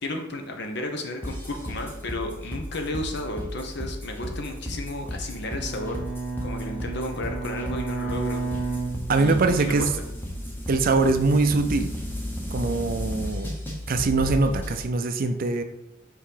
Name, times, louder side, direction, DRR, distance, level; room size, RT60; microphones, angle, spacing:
voice 1, 0.0-6.0 6.4-8.5 9.1-10.0, left 1 dB, 60° left, 3 dB, 0.9 m, -33 dB
sound 1, 1.2-14.8, left 1 dB, 10° left, 1.0 m, -33 dB
Bowed string instrument, 5.3-9.7, right 4 dB, 45° left, 2.2 m, -32 dB
voice 2, 9.1-9.9 10.7-11.9 12.5-13.6 13.9-15.6, right 3 dB, 45° right, 8 dB, 0.5 m, -22 dB
5.4 x 3.7 x 4.9 m, 0.90 s
head